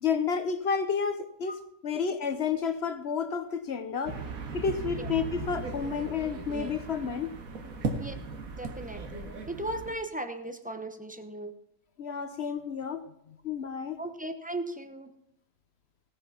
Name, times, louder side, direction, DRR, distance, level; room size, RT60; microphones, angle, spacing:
voice 1, 0.0-1.5 1.8-4.2 4.5-7.3 12.0-14.0, left 6 dB, 50° left, 10 dB, 1.0 m, -31 dB
sound 1, 4.1-10.0, right 4 dB, 65° right, 1.7 m, -37 dB
voice 2, 8.6-11.5 14.0-15.1, right 1 dB, 10° right, 8 dB, 0.5 m, -37 dB
17.0 x 6.8 x 5.7 m, 0.75 s
omnidirectional pair, 1.6 m